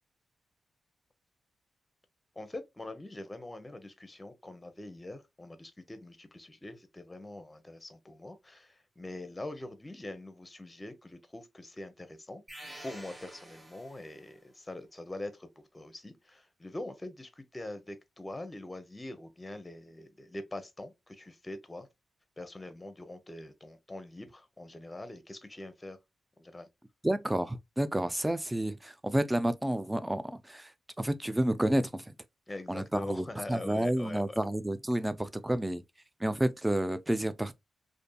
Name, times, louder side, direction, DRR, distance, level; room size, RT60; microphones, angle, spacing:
voice 1, 2.4-12.4 12.8-21.9 22.4-26.0 26.4-26.7 32.5-34.4, left 1 dB, 20° left, 0.6 m, -43 dB
sound 1, 12.5-14.4, right 1 dB, 30° right, 0.9 m, -49 dB
voice 2, 27.0-30.7 31.0-32.1 32.7-35.8 36.2-37.5, right 1 dB, 15° right, 0.3 m, -30 dB
2.6 x 2.6 x 2.2 m
cardioid pair, 60°, 0 cm